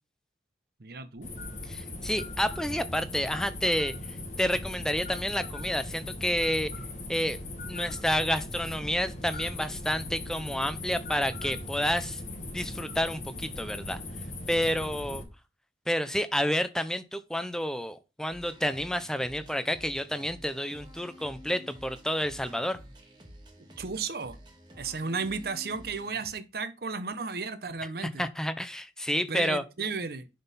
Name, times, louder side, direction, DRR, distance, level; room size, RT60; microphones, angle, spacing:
voice 1, 0.8-1.3 23.8-24.4 24.8-28.2 29.3-30.3, right 4 dB, 55° right, 0.7 m, -34 dB
sound 1, 1.2-15.2, left 2 dB, 40° left, 1.5 m, -39 dB
voice 2, 1.7-3.9 4.4-6.7 7.1-7.4 7.7-12.2 12.5-14.0 14.5-15.2 15.9-22.8 28.0-29.6, equal, 5° left, 0.5 m, -29 dB
sound 2, 18.3-26.3, equal, 25° right, 1.6 m, -50 dB
10.5 x 3.8 x 4.1 m
head